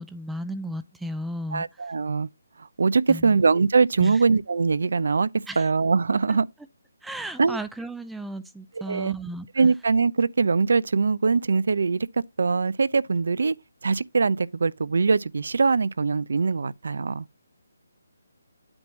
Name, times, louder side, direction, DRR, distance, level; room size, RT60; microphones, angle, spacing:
voice 1, 0.0-1.9 3.1-3.4 4.0-4.2 5.5-5.6 6.3-6.4 7.0-9.5, right 1 dB, 5° right, 0.4 m, -34 dB
voice 2, 1.5-2.3 2.6-6.5 7.4-7.6 8.9-9.1 9.5-13.6 13.8-17.3, right 4 dB, 70° right, 0.6 m, -22 dB
8.8 x 3.0 x 6.2 m
hypercardioid pair, 155°, 0 cm